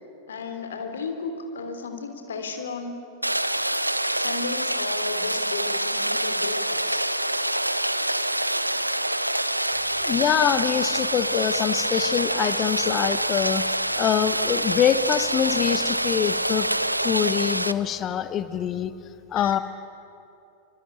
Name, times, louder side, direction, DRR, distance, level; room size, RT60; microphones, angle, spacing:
voice 1, 0.3-3.0 4.2-7.1 19.4-19.6, left 4 dB, 65° left, 7 dB, 3.3 m, -34 dB
Rain, 3.2-17.7, right 1 dB, 85° right, 0.8 m, -26 dB
voice 2, 10.0-13.6 14.0-16.7 17.0-18.9 19.3-19.6, left 9 dB, 30° left, 13 dB, 1.2 m, -24 dB
26.0 x 25.0 x 9.1 m, 2.8 s
figure-of-eight pair, 90°, 0 cm